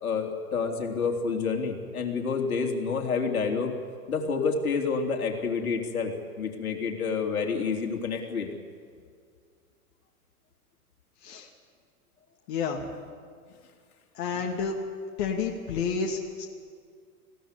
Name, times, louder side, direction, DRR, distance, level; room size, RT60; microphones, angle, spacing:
voice 1, 0.0-3.7 4.1-8.5, left 5 dB, 65° left, 3 dB, 3.4 m, -28 dB
voice 2, 12.5-12.8 14.2-14.8 15.2-16.5, left 5 dB, 40° left, 0 dB, 2.4 m, -30 dB
21.0 x 16.5 x 10.0 m, 2.1 s
figure-of-eight pair, 110°, 46 cm